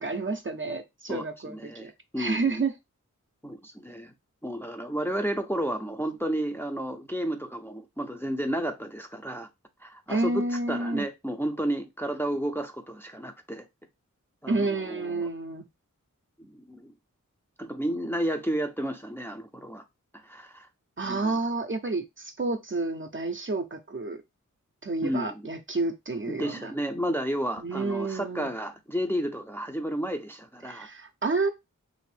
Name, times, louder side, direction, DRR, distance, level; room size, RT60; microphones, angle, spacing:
voice 1, 0.0-1.9 2.2-2.7 10.1-11.0 14.5-15.7 21.0-24.2 24.8-26.7 27.6-28.5 30.7-31.5, right 3 dB, 40° right, 0.6 m, -30 dB
voice 2, 1.1-2.6 3.4-4.1 4.4-9.5 9.8-13.7 14.4-15.3 16.4-16.9 17.6-19.8 20.2-20.7 21.0-21.4 25.0-25.5 26.3-30.9, right 1 dB, 5° left, 0.5 m, -32 dB
3.0 x 2.6 x 3.3 m
wide cardioid pair, 45°, 32 cm